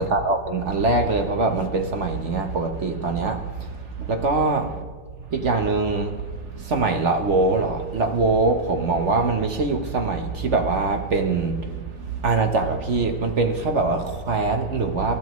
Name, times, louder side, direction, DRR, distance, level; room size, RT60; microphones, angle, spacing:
voice 1, 0.0-3.7 4.0-4.7 5.3-6.2 6.5-15.2, right 3 dB, 45° right, 1.1 m, -23 dB
27.5 x 12.5 x 3.1 m
omnidirectional pair, 1.9 m